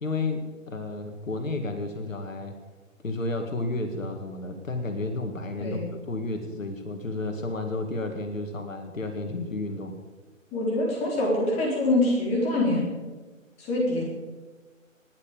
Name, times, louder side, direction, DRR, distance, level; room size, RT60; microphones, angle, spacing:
voice 1, 0.0-2.5 3.0-10.0, left 2 dB, 75° left, 5 dB, 2.3 m, -32 dB
voice 2, 10.5-12.9 13.6-14.0, left 1 dB, 15° left, -3 dB, 4.0 m, -24 dB
20.5 x 9.3 x 5.2 m, 1.3 s
figure-of-eight pair, 145°, 40 cm